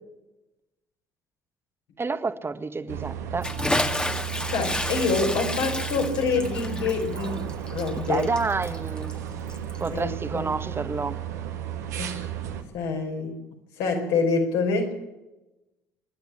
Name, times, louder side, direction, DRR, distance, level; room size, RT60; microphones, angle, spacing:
voice 1, 2.0-3.5 7.9-9.2 9.8-11.2, right 4 dB, 25° right, 11 dB, 1.7 m, -29 dB
sound 1, 2.9-12.6, right 10 dB, 80° right, 2.0 m, -34 dB
Bathtub (filling or washing) / Splash splatter, 3.4-10.0, left 1 dB, 10° left, 1.9 m, -31 dB
voice 2, 4.5-7.5 7.7-8.3 9.9-10.5 12.0-12.2 12.7-13.4 13.8-15.0, left 4 dB, 70° left, 2 dB, 5.2 m, -26 dB
27.0 x 11.5 x 8.6 m, 1.0 s
hypercardioid pair, 55°, 9 cm